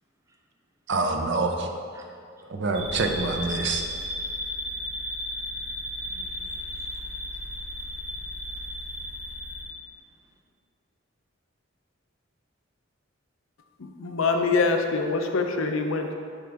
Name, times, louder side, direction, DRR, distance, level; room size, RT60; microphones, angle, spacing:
voice 1, 0.9-1.7 2.5-3.8, right 3 dB, 60° right, 4 dB, 0.6 m, -26 dB
sound 1, 2.7-9.6, left 1 dB, 35° right, 1.7 m, -34 dB
voice 2, 6.0-9.4 10.1-10.2, right 1 dB, 15° right, 1 dB, 0.6 m, -59 dB
voice 3, 13.8-16.1, left 4 dB, 75° left, 4 dB, 0.6 m, -25 dB
9.8 x 3.7 x 3.5 m, 2.2 s
head